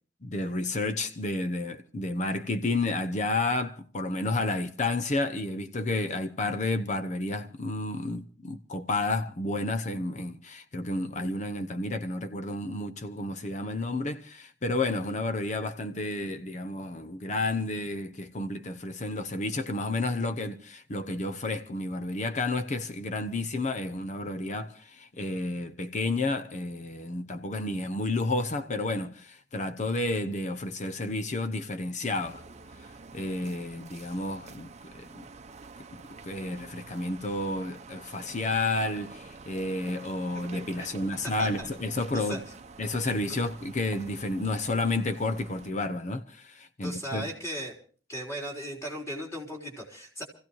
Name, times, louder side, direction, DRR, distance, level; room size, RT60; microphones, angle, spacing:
voice 1, 0.2-32.4 32.8-35.3 36.2-42.4 42.8-47.3, left 2 dB, 40° left, 0.8 m, -31 dB
sound 1, 32.2-45.7, right 4 dB, 40° right, 0.8 m, -47 dB
voice 2, 41.2-41.7 42.1-42.4 46.8-47.8 48.1-50.2, equal, 15° left, 3.9 m, -37 dB
28.0 x 15.5 x 3.1 m
head